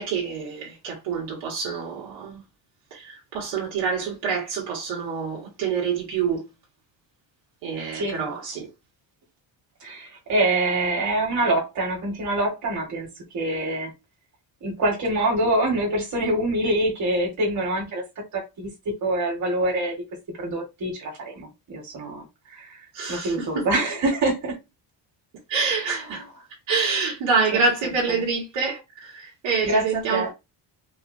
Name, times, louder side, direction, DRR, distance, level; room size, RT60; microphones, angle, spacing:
voice 1, 0.0-2.4 2.9-6.4 7.6-8.7 22.9-23.7 25.5-26.2 26.7-30.3, right 5 dB, 85° right, 1.8 m, -26 dB
voice 2, 7.9-8.3 9.8-13.1 13.3-13.9 14.6-18.0 18.3-20.0 20.4-22.2 22.5-22.8 23.1-24.6 25.6-26.3 27.5-28.2 29.6-30.3, right 1 dB, 40° right, 1.9 m, -25 dB
4.8 x 2.5 x 2.7 m
cardioid pair, 170°, 44 cm